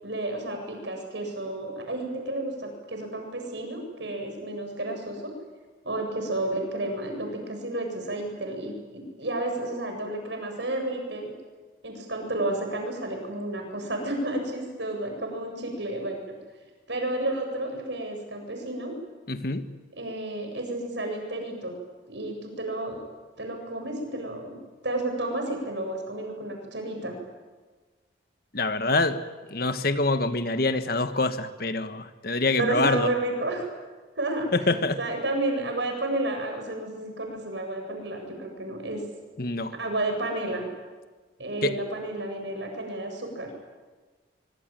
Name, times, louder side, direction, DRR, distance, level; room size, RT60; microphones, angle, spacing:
voice 1, 0.0-5.3 5.8-11.3 11.8-16.3 16.9-18.9 20.0-21.8 22.1-23.0 23.4-24.6 24.8-27.2 32.6-33.7 34.2-34.5 35.0-39.0 39.8-40.7 41.4-43.5, right 2 dB, 70° right, 3 dB, 7.7 m, -31 dB
voice 2, 19.3-19.7 28.5-29.2 29.5-33.1 34.5-35.0 39.4-39.7 41.6-41.8, left 3 dB, 50° left, 10 dB, 1.5 m, -25 dB
25.5 x 24.5 x 9.1 m, 1.3 s
head